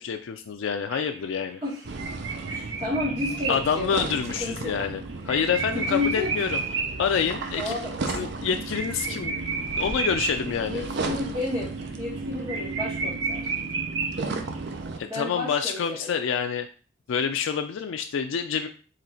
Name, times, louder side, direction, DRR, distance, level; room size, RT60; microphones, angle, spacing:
voice 1, 0.0-1.6 3.5-6.6 7.0-7.7 8.1-9.3 9.7-10.8 15.0-16.7 17.1-18.7, left 7 dB, 90° left, 6 dB, 0.4 m, -27 dB
sound 1, 0.9-7.1 7.4-7.5 7.8-7.9 8.2-10.8 11.2-11.5 11.8-11.9 12.2-12.3 12.5-14.6, right 5 dB, 85° right, 0.9 m, -32 dB
sound 2, 1.8-15.0, right 3 dB, 65° right, 0.6 m, -34 dB
voice 2, 2.5-4.0 4.4-4.8 5.7-6.3 7.5-7.9 10.6-13.4 15.0-16.1, left 2 dB, 30° right, -11 dB, 1.7 m, -31 dB
3.9 x 3.0 x 4.3 m, 0.39 s
head